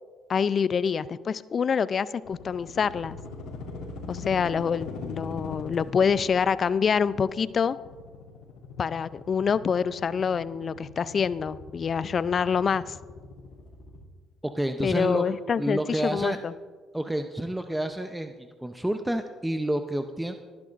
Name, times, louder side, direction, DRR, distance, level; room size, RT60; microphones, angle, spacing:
voice 1, 0.3-3.2 4.1-7.8 8.8-12.9 14.8-16.5, left 6 dB, 45° left, 17 dB, 0.4 m, -26 dB
sound 1, 2.2-14.0, left 4 dB, 80° left, 2.8 m, -42 dB
voice 2, 14.4-15.3 15.6-16.4 16.9-20.3, right 1 dB, 5° right, 7 dB, 0.7 m, -29 dB
20.5 x 10.5 x 2.6 m, 1.5 s
hypercardioid pair, 60°, 0 cm